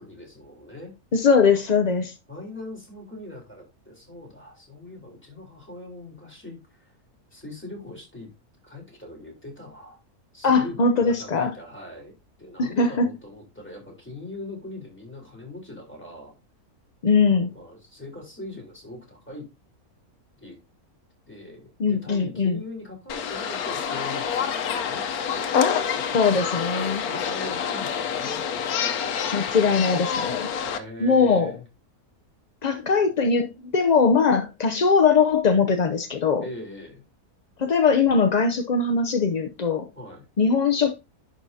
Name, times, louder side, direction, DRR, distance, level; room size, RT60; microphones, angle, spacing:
voice 1, 0.0-0.9 2.3-6.9 7.3-8.3 8.6-10.0 10.3-16.3 17.2-19.5 20.4-20.6 21.3-25.5 25.9-28.4 30.6-31.6 36.4-37.0 39.9-40.3, left 1 dB, 5° left, 3.5 m, -41 dB
voice 2, 1.1-2.1 10.4-11.5 12.6-13.1 17.0-17.5 21.8-22.6 26.1-27.0 29.3-30.5 31.0-31.5 32.6-36.4 37.6-39.8 40.4-40.9, left 5 dB, 55° left, 0.4 m, -21 dB
sound 1, 23.1-30.8, left 7 dB, 75° left, 1.3 m, -27 dB
11.0 x 5.5 x 2.7 m
omnidirectional pair, 1.6 m